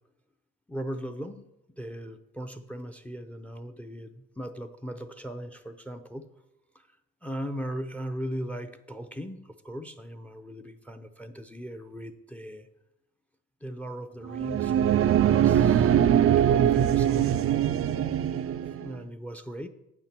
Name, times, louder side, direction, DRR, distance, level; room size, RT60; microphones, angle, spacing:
voice 1, 0.7-1.5 1.8-6.3 6.7-6.9 7.2-12.7 13.6-17.4 18.8-19.7, equal, 5° left, 10 dB, 0.6 m, -38 dB
sound 1, 14.3-18.9, right 10 dB, 50° right, 0.4 m, -22 dB
8.7 x 4.4 x 7.3 m, 0.89 s
cardioid pair, 90°, 30 cm